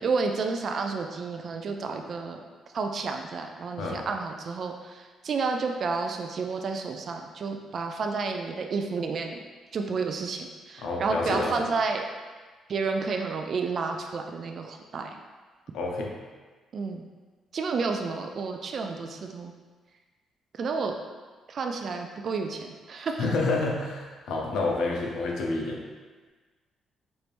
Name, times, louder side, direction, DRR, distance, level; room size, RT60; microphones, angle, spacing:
voice 1, 0.0-2.4 2.7-9.4 9.7-12.0 12.7-15.1 16.7-17.0 17.5-19.5 20.6-20.9 21.5-23.2, right 4 dB, 55° right, 4 dB, 0.3 m, -30 dB
voice 2, 10.8-11.6 15.7-16.1 23.2-25.8, left 3 dB, 80° left, -1 dB, 0.7 m, -28 dB
4.4 x 2.6 x 3.4 m, 1.4 s
cardioid pair, 90°, 0 cm